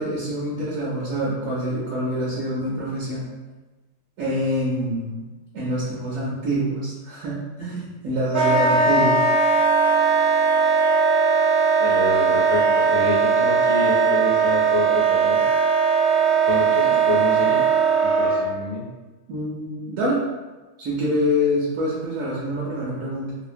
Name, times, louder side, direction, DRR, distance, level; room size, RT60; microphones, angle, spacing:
voice 1, 0.0-3.3 4.2-5.2 5.5-9.2 19.3-20.2 20.8-23.4, equal, 70° right, -7 dB, 1.0 m, -26 dB
Wind instrument woodwind instrument, 8.3-18.4, right 5 dB, 35° right, 0.5 m, -19 dB
voice 2, 11.8-15.4 16.4-17.6 18.0-18.9, left 4 dB, 65° left, -5 dB, 0.9 m, -28 dB
2.8 x 2.4 x 2.5 m, 1.2 s
omnidirectional pair, 1.5 m